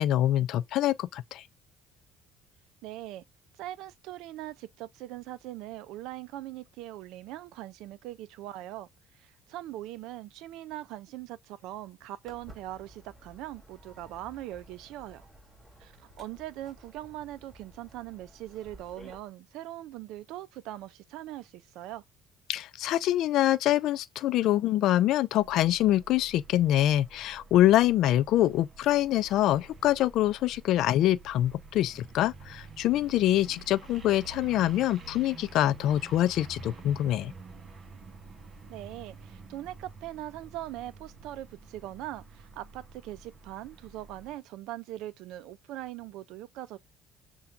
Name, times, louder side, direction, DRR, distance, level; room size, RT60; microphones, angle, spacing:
voice 1, 0.0-1.4 22.5-37.3, left 13 dB, 65° left, 0.4 m, -25 dB
voice 2, 2.8-3.2 3.5-8.9 9.1-15.3 15.8-22.0 38.7-46.8, right 14 dB, 80° right, 0.4 m, -41 dB
Walk footsteps, 12.3-19.2, right 1 dB, 20° right, 2.6 m, -54 dB
sound 1, 25.4-44.3, right 4 dB, 40° right, 0.7 m, -49 dB
6.8 x 2.3 x 2.4 m
cardioid pair, 140°, 0 cm